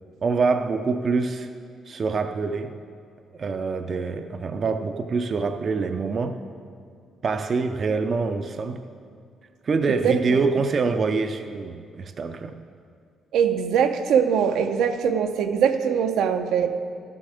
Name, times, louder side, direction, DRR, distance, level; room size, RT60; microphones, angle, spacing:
voice 1, 0.2-1.5 1.9-2.7 3.4-6.4 7.2-8.8 9.7-12.5, right 4 dB, 35° right, 7 dB, 0.5 m, -25 dB
voice 2, 9.9-10.6 13.3-16.7, right 7 dB, 85° right, 6 dB, 0.7 m, -22 dB
12.5 x 7.7 x 4.9 m, 2.3 s
cardioid pair, 160°, 0 cm